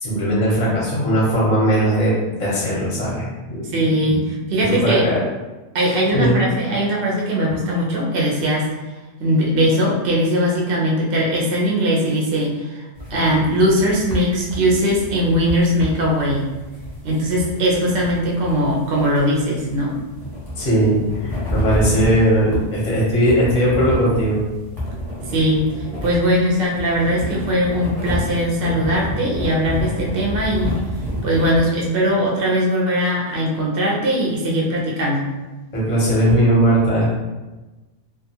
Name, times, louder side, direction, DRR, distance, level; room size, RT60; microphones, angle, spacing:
voice 1, 0.0-4.2 4.6-5.2 6.1-6.4 20.6-24.4 35.7-37.1, right 1 dB, 35° left, -6 dB, 0.6 m, -19 dB
voice 2, 3.7-5.1 5.7-8.7 9.2-12.8 13.1-16.4 17.0-20.0 25.3-30.8 31.2-35.2, equal, 55° right, -3 dB, 0.6 m, -20 dB
sound 1, 13.0-31.6, left 1 dB, ahead, 0.7 m, -29 dB
2.4 x 2.3 x 2.7 m, 1.1 s
omnidirectional pair, 1.6 m